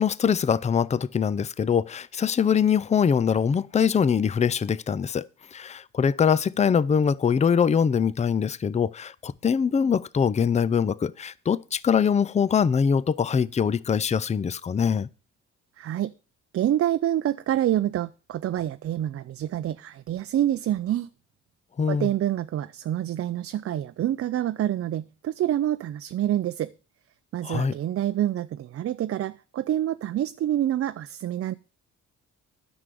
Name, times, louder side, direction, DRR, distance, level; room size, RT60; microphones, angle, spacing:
voice 1, 0.0-15.1 21.8-22.1 27.4-27.7, left 7 dB, 25° left, 0.4 m, -23 dB
voice 2, 15.8-16.1 16.5-21.1 21.9-26.7 27.3-31.5, right 12 dB, 50° right, 0.5 m, -27 dB
9.7 x 6.2 x 6.8 m
cardioid pair, 90°, 30 cm